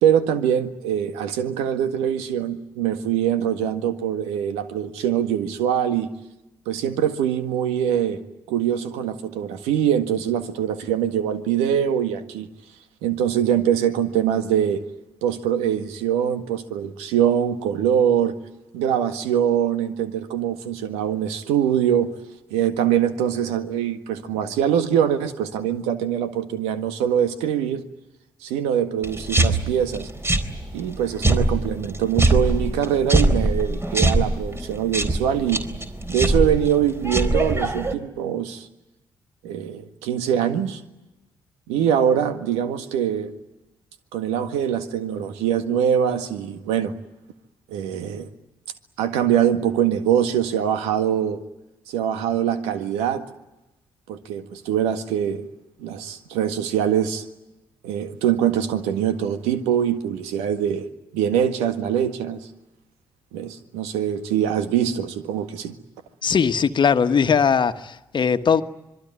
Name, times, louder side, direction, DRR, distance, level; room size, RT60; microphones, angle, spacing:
voice 1, 0.0-6.1 6.7-8.2 8.5-12.5 13.0-14.8 15.2-18.3 18.7-22.1 22.5-27.8 28.4-30.1 30.7-35.6 36.1-38.7 39.4-40.8 41.7-43.3 44.1-46.9 47.7-48.3 49.0-51.4 51.9-53.2 54.1-55.5 55.8-57.2 57.8-60.9 61.1-62.4 63.3-65.7, right 9 dB, 75° right, 1.8 m, -23 dB
sound 1, 29.0-37.9, right 2 dB, 25° right, 4.0 m, -23 dB
voice 2, 66.2-68.6, left 6 dB, 45° left, 1.4 m, -19 dB
26.0 x 22.5 x 9.6 m
hypercardioid pair, 40°, 11 cm